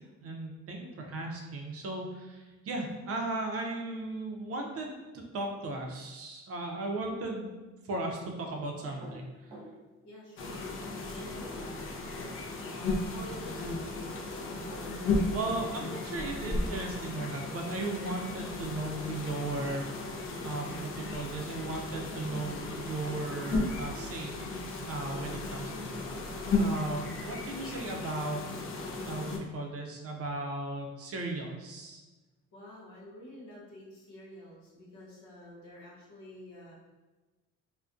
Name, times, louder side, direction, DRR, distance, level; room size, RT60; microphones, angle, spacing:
voice 1, 0.2-5.0 5.3-7.5 7.8-9.6 15.3-20.1 20.4-24.3 24.8-26.0 26.6-28.4 29.0-32.0, right 2 dB, 50° right, 2 dB, 0.5 m, -36 dB
sound 1, 8.8-9.8 11.2-12.0 14.1-14.9, right 1 dB, 20° right, 0.9 m, -48 dB
voice 2, 10.0-12.4 13.1-14.7 32.5-36.7, equal, 75° left, -4 dB, 0.8 m, -49 dB
sound 2, 10.4-29.4, left 3 dB, 45° left, 0.4 m, -35 dB
2.4 x 2.1 x 2.4 m, 1.2 s
cardioid pair, 90°, 30 cm